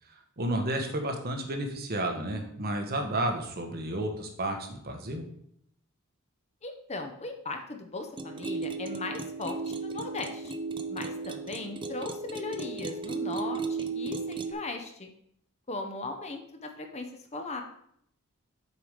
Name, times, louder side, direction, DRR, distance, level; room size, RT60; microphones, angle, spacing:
voice 1, 0.1-5.2, right 1 dB, 45° right, 4 dB, 1.2 m, -32 dB
voice 2, 6.6-10.5 10.9-15.1 15.7-17.1 17.3-17.6, left 3 dB, 30° left, 5 dB, 0.8 m, -38 dB
sound 1, 8.2-14.5, right 4 dB, 20° right, 0.5 m, -35 dB
7.1 x 4.8 x 5.0 m, 0.70 s
head